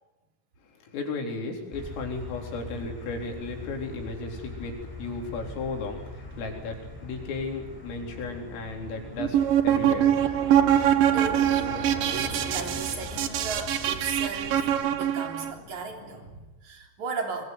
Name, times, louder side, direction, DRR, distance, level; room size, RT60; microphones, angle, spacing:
voice 1, 0.8-10.4, left 3 dB, 85° left, 2 dB, 6.7 m, -35 dB
Motor vehicle (road), 1.7-14.7, left 1 dB, 5° right, 6.4 m, -42 dB
sound 1, 3.3-16.3, left 2 dB, 30° left, 6.0 m, -44 dB
sound 2, 9.2-15.5, right 10 dB, 70° right, 2.2 m, -24 dB
voice 2, 11.1-17.4, right 4 dB, 40° right, 3 dB, 4.2 m, -37 dB
23.5 x 23.0 x 9.5 m, 1.1 s
omnidirectional pair, 5.8 m